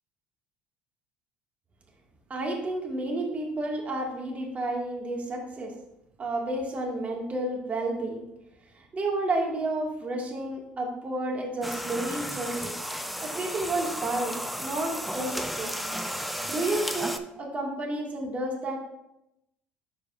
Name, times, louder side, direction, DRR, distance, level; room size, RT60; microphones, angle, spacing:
voice 1, 2.3-5.7 6.2-8.2 8.7-12.7 13.2-15.7 16.5-18.8, right 2 dB, 35° right, 0 dB, 2.1 m, -31 dB
sound 1, 11.6-17.2, equal, ahead, 0.7 m, -33 dB
11.5 x 4.8 x 2.6 m, 0.86 s
hypercardioid pair, 70°, 4 cm